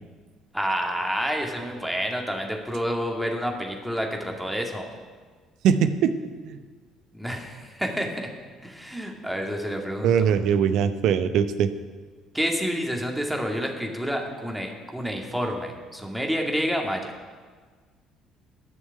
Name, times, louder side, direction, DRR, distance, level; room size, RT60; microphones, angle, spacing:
voice 1, 0.5-4.9 7.1-8.3 8.6-10.1 12.3-17.1, equal, ahead, 1 dB, 2.3 m, -29 dB
voice 2, 5.6-6.1 6.4-6.6 10.0-11.7, right 8 dB, 60° right, 11 dB, 0.7 m, -21 dB
12.0 x 6.3 x 9.3 m, 1.5 s
figure-of-eight pair, 50°, 0 cm